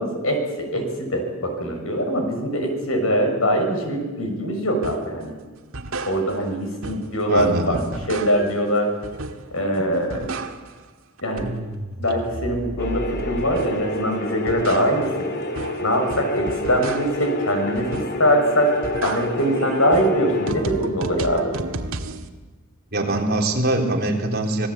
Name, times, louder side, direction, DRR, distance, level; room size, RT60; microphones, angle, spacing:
voice 1, 0.0-5.3 6.0-7.8 8.1-8.9 9.5-10.3 11.2-11.5 12.0-15.3 15.8-18.7 19.0-21.5, equal, 75° left, 4 dB, 6.4 m, -22 dB
sound 1, 4.8-5.1 5.6-6.5 6.8-8.6 9.0-9.6 9.9-10.9 11.2-13.9 14.3-17.3 17.7-18.3 18.7-22.3, right 2 dB, 75° right, 1.7 m, -33 dB
voice 2, 7.3-7.8 22.9-24.7, right 2 dB, 50° right, 1 dB, 3.6 m, -23 dB
sound 2, 12.8-20.5, left 2 dB, 50° left, 2.1 m, -29 dB
26.0 x 19.0 x 8.7 m, 1.3 s
head